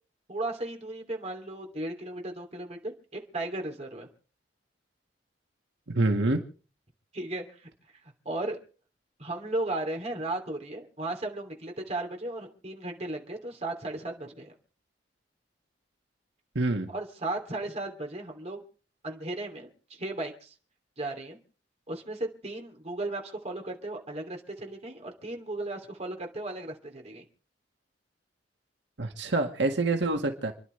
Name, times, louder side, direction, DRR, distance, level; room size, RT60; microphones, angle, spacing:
voice 1, 0.3-4.1 7.1-7.7 8.2-8.6 9.2-14.5 16.9-18.6 19.0-20.5 21.0-21.4 21.9-27.2, right 2 dB, 40° right, 2 dB, 3.0 m, -35 dB
voice 2, 5.9-6.4 16.6-16.9 29.0-30.5, right 2 dB, 80° right, 4 dB, 1.8 m, -26 dB
29.5 x 11.0 x 3.4 m, 0.39 s
head